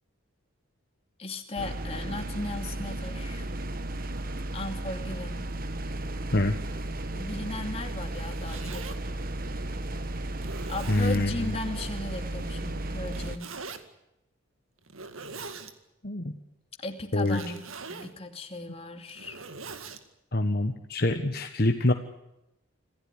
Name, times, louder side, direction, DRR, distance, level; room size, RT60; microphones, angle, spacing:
voice 1, 1.2-3.5 4.5-5.5 7.2-9.0 10.7-13.6 16.8-17.6 17.9-19.4, left 2 dB, 30° left, 5 dB, 2.6 m, -36 dB
sound 1, 1.6-13.4, right 1 dB, 45° right, 1.5 m, -34 dB
Zipper (clothing), 8.0-9.0 9.7-9.8 10.4-11.2 13.1-13.8 14.8-15.7 17.2-18.1 18.9-20.0, right 4 dB, 90° right, 2.1 m, -42 dB
voice 2, 10.9-11.5 16.0-16.4 17.1-17.4 20.3-21.9, left 2 dB, 50° left, 6 dB, 1.4 m, -25 dB
27.0 x 15.5 x 9.8 m, 0.88 s
head